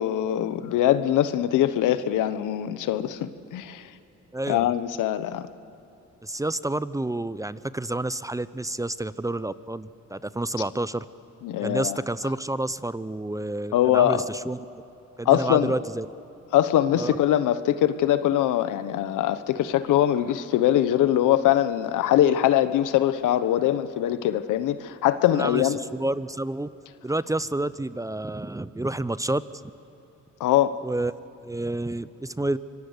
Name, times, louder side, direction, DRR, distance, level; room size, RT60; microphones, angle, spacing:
voice 1, 0.0-3.8 4.5-5.5 11.4-12.0 13.7-14.2 15.2-15.7 16.5-25.8 30.4-30.8, left 12 dB, 85° left, 13 dB, 1.1 m, -22 dB
voice 2, 4.3-4.7 6.2-11.0 11.6-14.7 15.2-16.1 16.9-17.2 25.3-26.7 27.0-29.4 30.8-31.1 31.4-32.6, right 2 dB, 10° right, 16 dB, 0.6 m, -29 dB
25.0 x 22.0 x 8.1 m, 3.0 s
cardioid pair, 90°, 30 cm